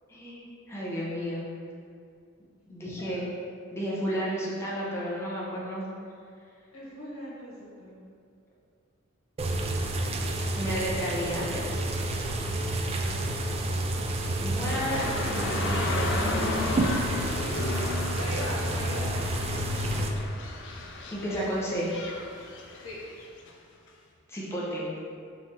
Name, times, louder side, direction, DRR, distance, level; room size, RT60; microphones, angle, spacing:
voice 1, 0.1-1.5 2.7-3.3 3.7-5.8 10.5-11.6 14.4-16.7 17.2-17.4 21.1-21.9 24.3-24.9, equal, 15° left, -6 dB, 0.7 m, -32 dB
voice 2, 6.7-8.2 13.5-13.6 17.2-19.1 22.8-23.0, left 1 dB, 85° left, -6 dB, 1.3 m, -39 dB
sound 1, 9.4-20.1, right 1 dB, 30° right, 0.3 m, -30 dB
sound 2, 14.7-23.5 23.9-24.0, left 3 dB, 60° left, 0.4 m, -34 dB
3.9 x 3.1 x 4.2 m, 2.3 s
head